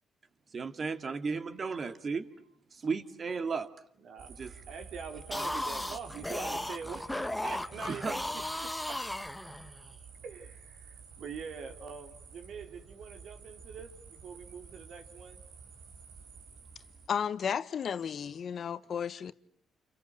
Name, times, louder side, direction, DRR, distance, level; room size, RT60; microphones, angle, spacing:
voice 1, 0.5-2.3 2.7-3.7 4.4-4.5 7.9-8.1, right 5 dB, 40° right, 2.4 m, -34 dB
voice 2, 4.0-4.4 4.7-9.0 10.2-15.4, right 5 dB, 70° right, 3.8 m, -44 dB
sound 1, 4.2-17.1, right 5 dB, 85° right, 5.2 m, -51 dB
sound 2, 5.2-9.9, left 1 dB, 5° left, 1.3 m, -36 dB
voice 3, 17.1-19.3, left 7 dB, 55° left, 1.3 m, -33 dB
29.5 x 29.5 x 6.5 m
cardioid pair, 90°, 0 cm